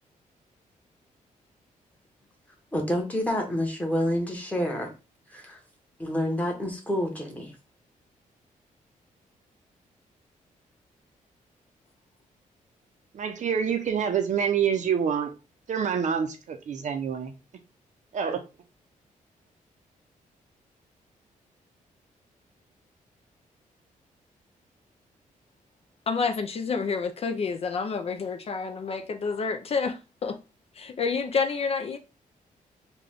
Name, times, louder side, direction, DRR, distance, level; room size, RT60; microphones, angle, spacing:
voice 1, 2.7-4.9 5.3-5.6 6.0-7.5, equal, 10° left, 1.1 m, -28 dB
voice 2, 13.1-15.3 15.7-17.3 18.1-18.4, right 7 dB, 60° right, 0.6 m, -27 dB
voice 3, 26.1-30.4 30.7-32.0, left 5 dB, 45° left, 0.4 m, -29 dB
3.8 x 2.3 x 3.5 m
cardioid pair, 120°, 14 cm